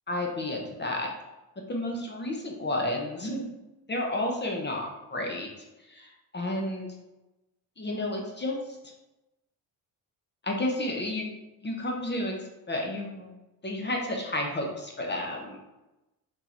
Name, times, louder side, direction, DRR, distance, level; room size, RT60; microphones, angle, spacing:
voice 1, 0.1-1.1 1.6-3.5 3.9-5.5 5.9-6.9 7.8-8.6 10.4-11.4 11.6-12.3 12.7-13.3 13.6-15.6, left 1 dB, 25° left, 0 dB, 0.8 m, -31 dB
3.6 x 3.0 x 3.9 m, 0.99 s
supercardioid pair, 70°, 41 cm